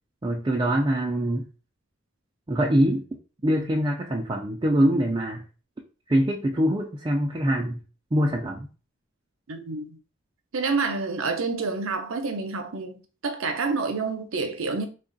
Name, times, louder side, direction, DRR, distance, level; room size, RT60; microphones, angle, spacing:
voice 1, 0.2-1.5 2.5-3.0 3.4-5.4 6.1-7.8 8.1-8.7, equal, 20° right, 0.4 m, -24 dB
voice 2, 9.5-10.0 10.5-14.9, right 4 dB, 75° right, 0.7 m, -28 dB
3.5 x 2.4 x 3.9 m
head